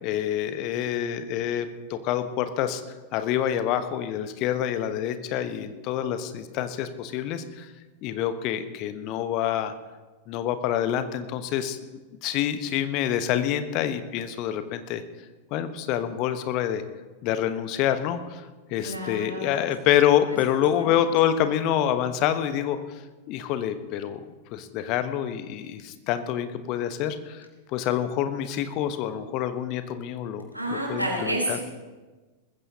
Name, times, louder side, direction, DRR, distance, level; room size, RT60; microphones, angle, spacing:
voice 1, 0.0-2.8 3.1-7.7 8.0-9.7 10.3-11.8 12.2-15.0 15.5-16.8 17.2-23.0 23.3-24.2 24.5-27.5 27.7-31.6, left 10 dB, 40° left, 10 dB, 1.0 m, -27 dB
voice 2, 18.8-19.5 20.3-20.4 30.5-31.6, right 1 dB, 90° right, -1 dB, 3.6 m, -29 dB
20.5 x 15.0 x 2.9 m, 1.3 s
figure-of-eight pair, 90°, 0 cm